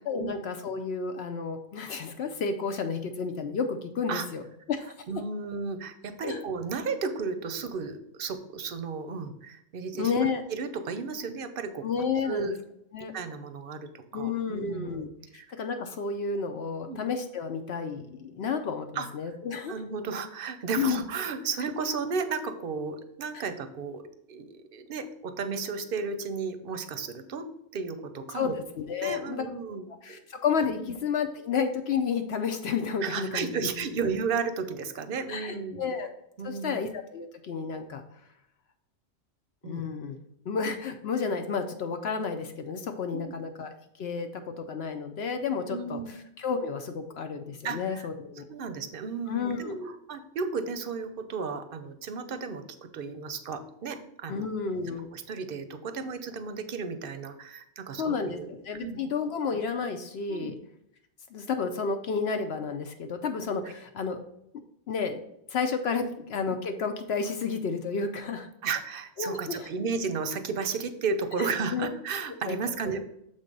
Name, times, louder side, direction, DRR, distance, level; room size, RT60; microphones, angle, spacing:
voice 1, 0.1-4.4 4.7-4.9 6.2-6.4 9.9-10.4 11.8-12.6 12.9-13.1 14.1-15.1 15.3-19.7 20.8-21.0 23.3-23.4 28.3-29.4 30.0-33.7 35.3-36.1 36.4-38.0 39.6-40.2 40.5-48.4 49.3-49.9 54.3-55.1 58.0-60.5 61.3-64.2 64.9-65.2 65.5-68.5 69.2-69.7 71.4-71.9 72.5-72.6 72.8-72.9, left 5 dB, 65° left, 6 dB, 0.8 m, -31 dB
voice 2, 5.1-10.1 10.5-11.8 12.3-12.5 13.1-15.0 15.3-15.5 16.9-17.0 19.0-19.1 19.7-24.0 24.3-27.5 27.7-28.5 29.0-30.2 30.8-30.9 33.0-35.9 36.4-36.8 39.6-39.8 43.1-43.4 45.7-46.1 47.6-48.1 48.5-52.6 52.9-54.5 55.1-58.5 58.8-59.0 60.3-60.5 68.6-73.0, right 5 dB, 55° right, 10 dB, 0.7 m, -33 dB
6.7 x 3.6 x 5.2 m, 0.77 s
omnidirectional pair, 1.2 m